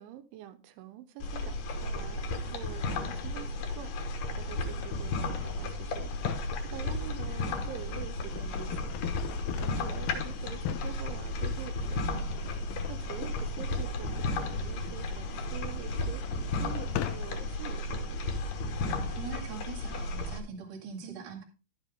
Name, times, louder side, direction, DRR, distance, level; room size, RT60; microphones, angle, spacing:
voice 1, 0.0-3.9 4.4-6.1 6.6-8.9 9.6-12.3 12.9-18.2 21.0-21.3, right 11 dB, 85° right, 3.2 m, -46 dB
sound 1, 1.2-20.4, left 2 dB, 65° left, 2.4 m, -34 dB
sound 2, 6.1-6.6 7.2-17.6, left 13 dB, 85° left, 2.2 m, -41 dB
voice 2, 18.8-21.4, right 5 dB, 40° right, 2.0 m, -43 dB
12.0 x 7.6 x 3.5 m
omnidirectional pair, 5.4 m